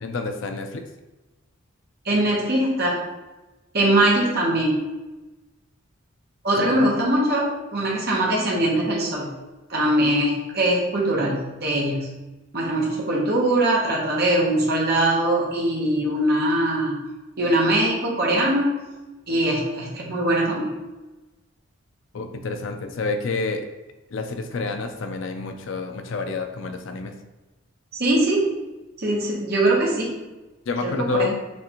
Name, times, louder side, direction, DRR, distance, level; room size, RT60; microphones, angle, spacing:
voice 1, 0.0-0.8 6.6-6.9 22.1-23.7 24.1-27.1 30.7-31.3, left 3 dB, 65° left, 6 dB, 0.5 m, -28 dB
voice 2, 2.0-3.0 3.7-4.8 6.4-9.3 9.7-12.1 12.5-16.9 17.4-18.7 19.3-20.7 27.9-28.5 29.0-30.2 30.8-31.3, right 1 dB, 50° right, -3 dB, 1.0 m, -22 dB
6.2 x 2.5 x 2.9 m, 1.1 s
head